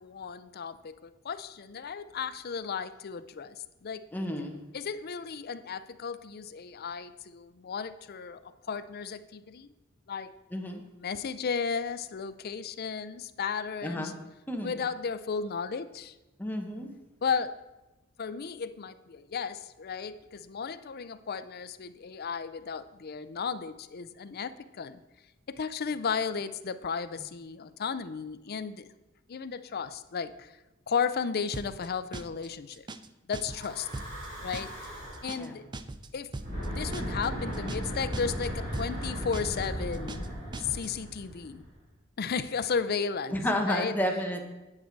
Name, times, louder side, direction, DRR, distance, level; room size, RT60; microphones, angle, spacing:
voice 1, 0.0-3.6 3.8-4.0 4.7-8.4 8.7-9.7 10.1-10.3 11.0-14.1 14.6-16.1 17.2-17.5 18.2-25.0 25.5-28.9 29.3-30.5 30.9-32.8 33.3-33.9 34.4-34.7 35.2-35.6 36.1-36.3 36.7-40.3 40.6-41.6 42.2-43.3 43.7-43.9, left 6 dB, 50° left, 12 dB, 0.5 m, -34 dB
voice 2, 4.1-4.6 10.5-10.8 13.8-14.1 14.5-14.8 16.4-16.9 35.3-35.6 43.3-44.4, equal, 10° left, 3 dB, 1.0 m, -31 dB
sound 1, 31.5-31.9 32.1-32.5 32.7-33.1 33.3-33.7 33.9-34.3 34.5-34.9 35.1-35.5 35.7-36.1 36.3-36.7 36.9-37.3 37.5-37.9 38.1-38.5 38.7-39.1 39.3-39.7 39.9-40.3 40.5-40.9, right 2 dB, 20° right, 0.4 m, -40 dB
Breathing / Wind, 33.4-35.4 36.3-41.7, equal, 55° right, 3.6 m, -37 dB
9.7 x 7.5 x 4.6 m, 1.0 s
head